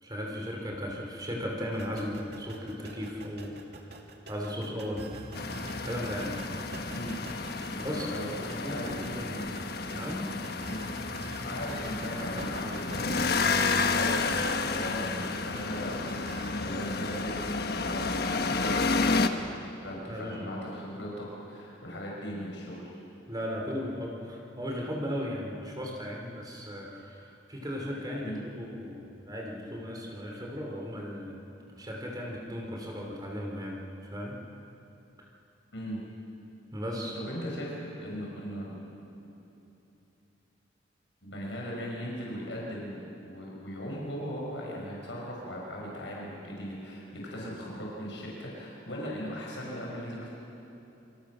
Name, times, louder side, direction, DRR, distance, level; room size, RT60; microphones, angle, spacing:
voice 1, 0.0-3.9 4.3-5.1 5.8-6.4 7.8-9.4 9.9-10.3 20.1-20.6 23.3-31.5 31.7-34.4 35.2-35.3 36.7-37.2, equal, 20° right, 0 dB, 3.3 m, -36 dB
sound 1, 1.7-16.7, right 2 dB, 60° right, 2.4 m, -46 dB
sound 2, 5.3-19.3, left 4 dB, 60° left, 1.3 m, -31 dB
voice 2, 7.9-8.3 8.6-9.5 10.7-10.9 11.5-19.5 19.8-22.9 28.2-28.4 35.7-36.0 37.2-38.8 41.2-50.3, equal, 85° left, -3 dB, 5.7 m, -38 dB
27.0 x 26.5 x 6.3 m, 3.0 s
head